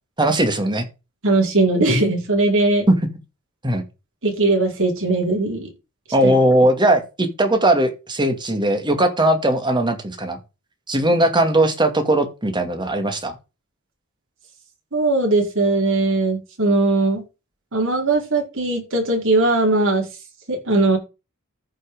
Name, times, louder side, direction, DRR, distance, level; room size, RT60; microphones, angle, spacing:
voice 1, 0.2-0.9 2.9-3.1 3.6-3.8 6.1-10.4 10.9-13.4, right 1 dB, 20° right, 2.3 m, -19 dB
voice 2, 1.2-2.9 4.2-5.7 6.2-6.3 14.9-17.2 17.7-20.1 20.5-21.0, right 2 dB, 60° right, 5.2 m, -19 dB
14.0 x 5.8 x 5.1 m
head